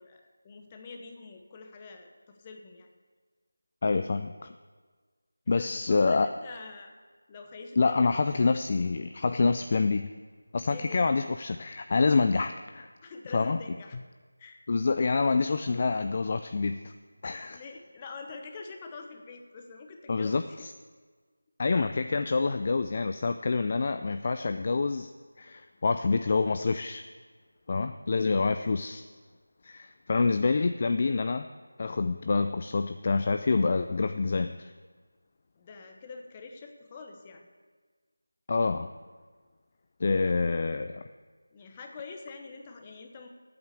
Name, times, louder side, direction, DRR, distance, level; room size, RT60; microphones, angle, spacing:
voice 1, 0.0-2.9 5.5-6.9 7.3-8.5 10.7-11.1 13.0-14.0 14.4-14.6 17.5-20.7 35.6-37.5 40.1-40.3 41.5-43.3, left 4 dB, 20° left, 4 dB, 1.0 m, -45 dB
voice 2, 3.8-4.5 5.5-6.3 7.8-10.1 10.5-12.9 13.3-13.6 14.7-16.9 17.2-17.6 20.1-20.7 21.6-25.1 25.4-27.1 27.7-29.0 29.6-31.5 31.8-34.7 38.5-38.9 40.0-41.1, left 4 dB, 35° left, 9 dB, 0.4 m, -27 dB
8.5 x 8.0 x 8.4 m, 1.5 s
figure-of-eight pair, 170°, 0 cm